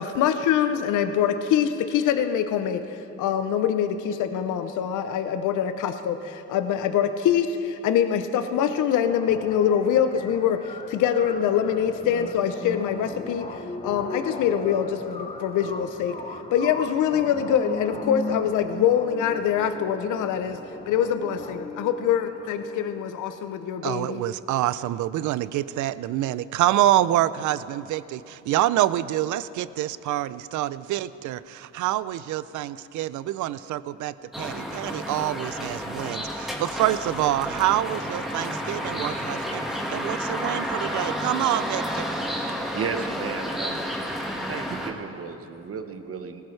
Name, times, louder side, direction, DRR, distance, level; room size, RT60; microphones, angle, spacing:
voice 1, 0.0-20.6 20.9-24.2, left 9 dB, 80° left, 9 dB, 0.7 m, -24 dB
sound 1, 9.1-23.0, left 3 dB, 20° left, 0.9 m, -37 dB
voice 2, 23.8-39.6 39.9-42.1, right 13 dB, 75° right, 17 dB, 0.5 m, -26 dB
sound 2, 34.3-44.9, equal, ahead, 1.6 m, -31 dB
voice 3, 42.7-43.8 44.5-46.4, right 5 dB, 50° right, 7 dB, 1.1 m, -33 dB
18.5 x 15.0 x 3.3 m, 2.8 s
cardioid pair, 90°, 30 cm